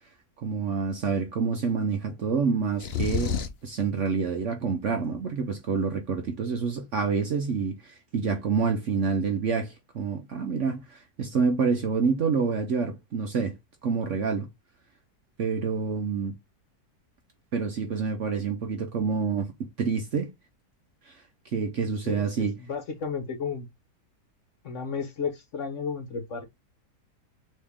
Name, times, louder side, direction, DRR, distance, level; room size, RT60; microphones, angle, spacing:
voice 1, 0.4-3.4 3.6-13.6 13.8-14.5 15.4-16.3 17.5-20.3 21.1-21.2 21.5-22.6, right 5 dB, 60° right, 0.9 m, -27 dB
sound 1, 2.8-3.7, left 6 dB, 75° left, 0.6 m, -28 dB
voice 2, 22.0-23.7 24.6-26.5, left 5 dB, 55° left, 1.0 m, -33 dB
4.2 x 2.9 x 3.5 m
omnidirectional pair, 1.8 m